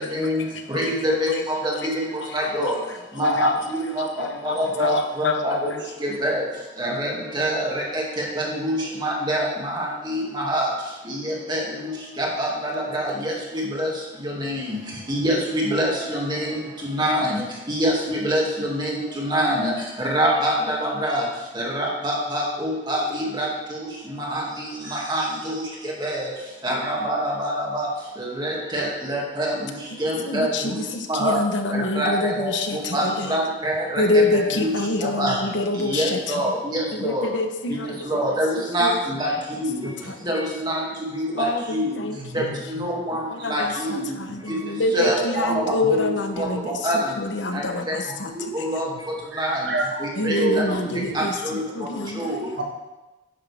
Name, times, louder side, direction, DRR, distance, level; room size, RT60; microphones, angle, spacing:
voice 1, 0.1-1.9 2.4-2.8 3.2-5.8 6.1-6.4 10.1-10.2 11.6-12.0 12.2-12.4 29.9-33.4 34.0-36.5 36.9-38.1 38.5-39.0 40.0-40.4 41.3-42.6 43.1-48.7 50.2-52.3, left 2 dB, 70° left, 6 dB, 1.1 m, -27 dB
voice 2, 0.7-1.2 1.6-2.0 2.3-2.8 3.2-3.5 4.6-4.9 5.4-5.5 6.0-6.4 6.8-7.7 7.9-8.0 8.4-9.5 9.7-10.7 11.1-11.2 11.5-11.6 12.2-12.5 12.9-13.9 14.4-14.6 15.1-16.5 16.9-17.3 17.7-19.7 20.0-21.2 21.7-23.5 24.3-24.4 25.1-25.2 26.0-26.2 26.6-27.9 28.4-28.8 29.1-29.5 30.0-30.8 31.1-31.4 32.0-32.5 32.9-33.0 33.3-34.0 34.3-34.8 35.2-35.4 35.8-37.2 38.1-38.9 39.2-39.7 40.3-40.8 41.1-41.5 41.7-41.9 42.7-43.2 43.5-44.0 44.9-46.5 46.8-47.0 48.5-48.9 49.4-49.6 50.3-50.4 51.1-51.2 52.2-52.4, right 1 dB, 25° right, -3 dB, 2.4 m, -25 dB
voice 3, 49.3-51.2 52.6-52.7, right 2 dB, 60° right, 1 dB, 1.7 m, -28 dB
12.0 x 10.0 x 3.6 m, 1.1 s
head